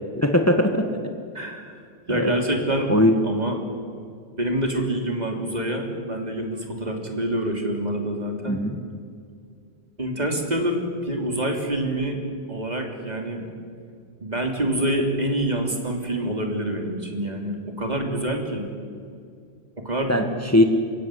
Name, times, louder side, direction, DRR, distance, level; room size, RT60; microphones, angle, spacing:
voice 1, 0.1-0.8 2.1-2.4 2.9-3.2 8.5-8.8 20.1-20.6, left 1 dB, 15° left, 6 dB, 1.5 m, -19 dB
voice 2, 1.3-1.8 2.1-2.9 3.2-3.6 4.4-8.6 10.0-12.2 12.5-13.5 14.2-18.7 19.8-20.1, right 1 dB, 40° right, 3 dB, 3.5 m, -26 dB
29.0 x 16.0 x 10.0 m, 2.2 s
omnidirectional pair, 1.1 m